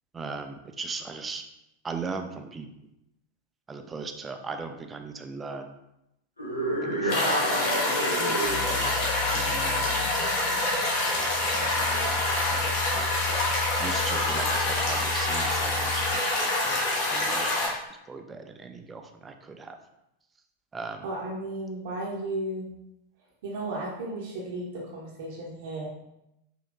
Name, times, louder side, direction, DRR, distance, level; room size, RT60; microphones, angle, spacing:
voice 1, 0.1-1.4 1.8-2.7 3.7-5.7 6.8-7.3 8.2-10.7 11.1-13.0 13.8-16.8 17.1-17.7 18.1-19.8 20.7-21.1, right 4 dB, 15° right, 5 dB, 0.4 m, -39 dB
sound 1, 6.4-8.7, right 1 dB, 80° left, 0.7 m, -28 dB
sound 2, 7.1-17.7, left 2 dB, 45° left, 1.0 m, -26 dB
sound 3, 8.4-16.1, left 5 dB, 65° left, 1.3 m, -37 dB
voice 2, 21.0-22.7 23.4-25.9, right 1 dB, 55° right, -4 dB, 0.8 m, -34 dB
5.1 x 2.8 x 2.5 m, 0.86 s
figure-of-eight pair, 90°, 0 cm